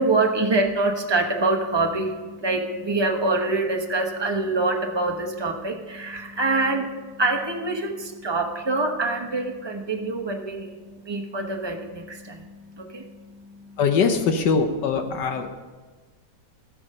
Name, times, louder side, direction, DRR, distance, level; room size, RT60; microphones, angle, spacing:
voice 1, 0.0-6.9 7.2-10.8 11.1-12.4 12.7-13.0, right 2 dB, 20° right, 3 dB, 0.8 m, -25 dB
voice 2, 13.8-15.5, left 5 dB, 75° left, 6 dB, 1.5 m, -22 dB
13.0 x 8.8 x 5.5 m, 1.3 s
omnidirectional pair, 1.9 m